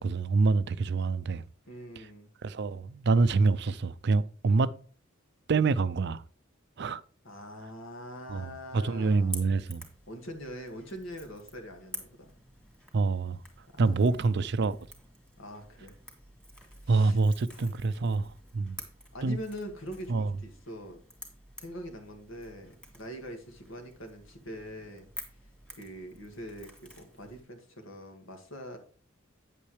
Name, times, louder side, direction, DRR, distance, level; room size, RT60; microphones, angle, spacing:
voice 1, 0.0-1.4 2.0-2.1 2.4-4.7 5.5-6.2 6.8-7.0 8.3-9.8 12.9-13.4 13.8-14.8 16.9-18.8 19.2-19.4 20.1-20.3, right 3 dB, 55° right, 0.5 m, -26 dB
voice 2, 1.7-2.3 7.2-9.4 10.1-12.3 13.7-14.3 15.4-15.9 16.8-17.2 17.5-17.7 19.1-21.0 21.6-25.1 25.8-28.8, equal, 70° left, 2.0 m, -43 dB
Crackle / Crack, 9.1-27.4, equal, 5° left, 2.3 m, -49 dB
9.3 x 8.5 x 3.2 m
head